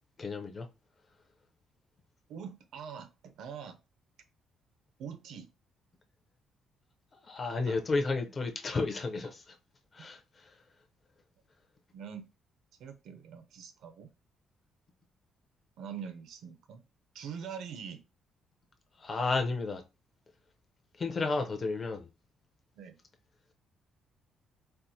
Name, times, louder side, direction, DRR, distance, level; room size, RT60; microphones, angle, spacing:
voice 1, 0.2-0.7 7.2-9.6 9.9-10.5 19.0-19.8 21.0-22.1, left 3 dB, 30° left, 0.5 m, -32 dB
voice 2, 2.3-3.8 5.0-5.5 7.7-7.8 10.0-10.1 11.9-12.2 12.8-14.1 15.8-16.8 17.1-18.0 22.8-23.0, right 7 dB, 75° right, 0.5 m, -44 dB
4.4 x 2.0 x 2.6 m
cardioid pair, 170°, 0 cm